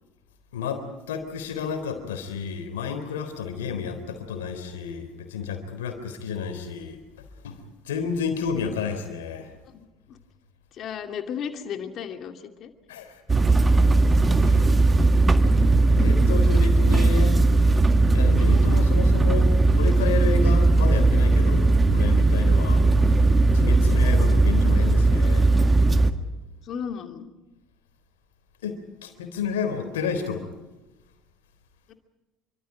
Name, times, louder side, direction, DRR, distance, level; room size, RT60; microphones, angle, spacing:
voice 1, 0.5-7.0 7.4-9.5 12.9-13.2 14.4-14.7 15.9-17.4 18.1-22.8 23.5-25.5 28.6-30.5, left 6 dB, 75° left, 8 dB, 3.7 m, -31 dB
voice 2, 9.6-10.2 10.7-12.7 22.4-22.7 23.4-23.7 26.6-27.3 31.9-32.0, left 7 dB, 45° left, 6 dB, 2.6 m, -35 dB
sound 1, 13.3-26.1, right 2 dB, 20° right, 1.8 m, -18 dB
28.0 x 24.5 x 5.0 m, 1.1 s
figure-of-eight pair, 60°, 0 cm